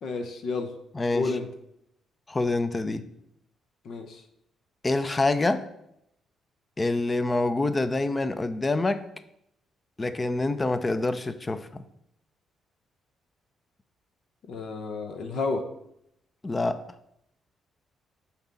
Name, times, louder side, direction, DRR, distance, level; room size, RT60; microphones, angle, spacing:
voice 1, 0.0-0.7 1.1-1.5 3.8-4.2 14.5-15.7, left 3 dB, 65° left, 0.8 m, -31 dB
voice 2, 0.9-1.3 2.3-3.1 4.8-5.7 6.8-9.1 10.0-11.8 16.4-16.8, left 2 dB, 25° left, 0.5 m, -26 dB
5.8 x 4.2 x 5.2 m
cardioid pair, 90°, 0 cm